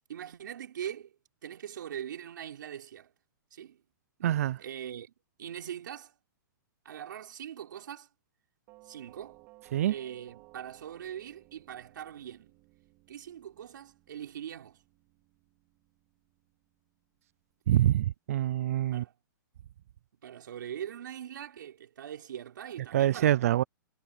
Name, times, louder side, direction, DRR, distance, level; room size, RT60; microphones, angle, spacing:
voice 1, 0.1-1.1 1.4-3.1 3.5-3.8 4.2-5.1 5.4-6.1 6.8-8.1 8.8-9.4 9.9-12.6 13.1-14.8 18.9-19.1 20.2-23.4, right 10 dB, 70° right, 4.0 m, -42 dB
voice 2, 4.2-4.6 9.7-9.9 17.7-19.0 22.9-23.6, right 12 dB, 45° right, 0.4 m, -25 dB
Doorbell, 8.7-17.5, right 21 dB, 25° right, 3.8 m, -60 dB
hypercardioid pair, 170°, 11 cm